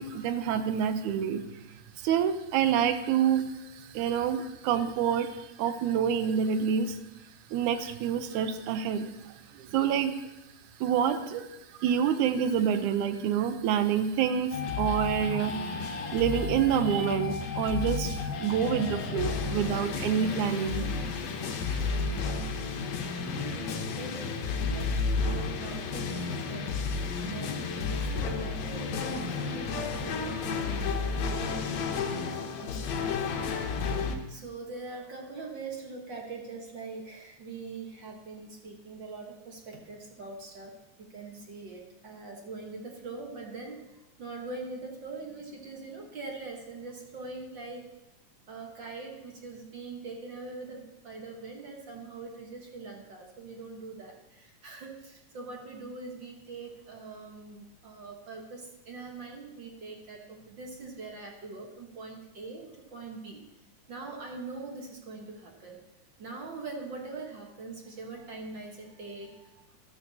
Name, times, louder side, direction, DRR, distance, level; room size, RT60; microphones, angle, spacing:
voice 1, 0.0-1.4 2.0-3.5 3.9-7.0 7.5-9.1 9.6-10.2 10.8-11.5 11.8-21.1, right 8 dB, 85° right, 10 dB, 2.2 m, -27 dB
sound 1, 14.5-34.2, left 4 dB, 70° left, 2.1 m, -32 dB
voice 2, 23.2-24.4 24.7-26.8 27.1-33.7 34.3-40.8 41.1-47.9 48.5-63.4 63.9-65.8 66.2-69.8, right 3 dB, 50° right, 1 dB, 1.6 m, -43 dB
13.0 x 12.5 x 2.8 m, 0.95 s
omnidirectional pair, 3.4 m